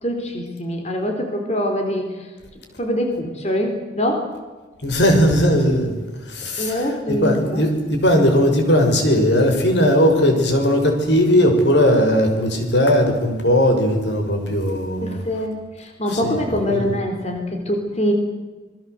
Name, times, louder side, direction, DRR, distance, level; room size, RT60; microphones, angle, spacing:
voice 1, 0.0-2.3 2.8-4.3 6.6-7.6 15.0-18.1, equal, 35° left, 3 dB, 3.9 m, -24 dB
voice 2, 4.8-5.9 6.3-6.9 7.2-15.2 16.1-16.9, equal, 85° left, 4 dB, 6.0 m, -18 dB
26.5 x 21.5 x 8.1 m, 1.3 s
head